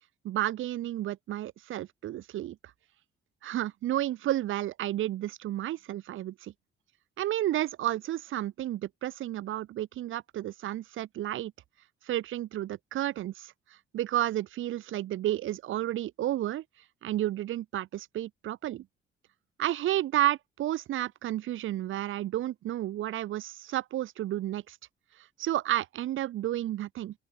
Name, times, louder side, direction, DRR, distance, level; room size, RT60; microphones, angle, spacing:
voice 1, 0.2-2.6 3.4-6.5 7.2-11.5 12.0-13.5 13.9-16.6 17.0-18.9 19.6-24.8 25.4-27.1, right 13 dB, 80° right, 7.7 m, -31 dB
open air
cardioid pair, 90°, 20 cm